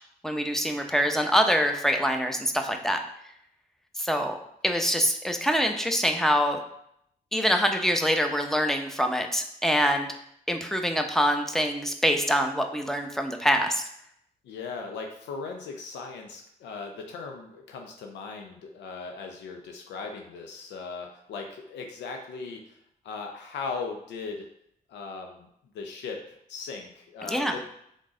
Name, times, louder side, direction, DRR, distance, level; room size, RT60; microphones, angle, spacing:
voice 1, 0.2-3.0 4.0-4.4 4.6-6.6 7.3-10.1 10.5-13.8 27.3-27.5, equal, ahead, 4 dB, 0.8 m, -25 dB
voice 2, 14.4-22.8 23.0-24.5 24.9-25.5 25.7-26.2 26.5-27.6, left 4 dB, 85° left, 3 dB, 0.5 m, -38 dB
3.7 x 3.6 x 3.8 m, 0.72 s
supercardioid pair, 50°, 18 cm